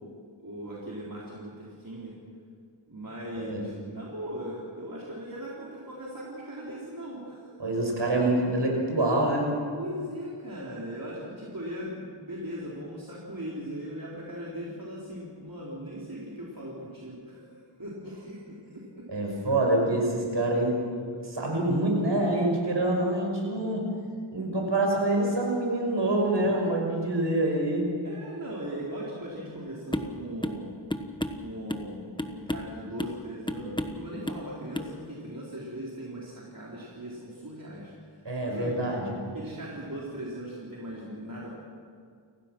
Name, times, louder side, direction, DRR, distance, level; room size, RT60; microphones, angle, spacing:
voice 1, 0.4-2.1 2.9-7.6 9.8-19.0 22.3-22.4 28.0-30.7 31.4-38.8 39.3-41.5, equal, 45° right, -5 dB, 4.0 m, -39 dB
voice 2, 7.6-9.5 19.1-20.8 21.2-23.9 24.3-27.9 38.2-39.1, right 1 dB, 65° right, 0 dB, 6.1 m, -26 dB
sound 1, 29.9-30.2 30.4-30.6 30.9-31.9 32.2-32.7 33.0-33.2 33.5-34.0 34.3-34.5 34.7-34.9, left 1 dB, 10° left, 1.3 m, -32 dB
29.5 x 15.5 x 6.1 m, 2.2 s
wide cardioid pair, 65°, 46 cm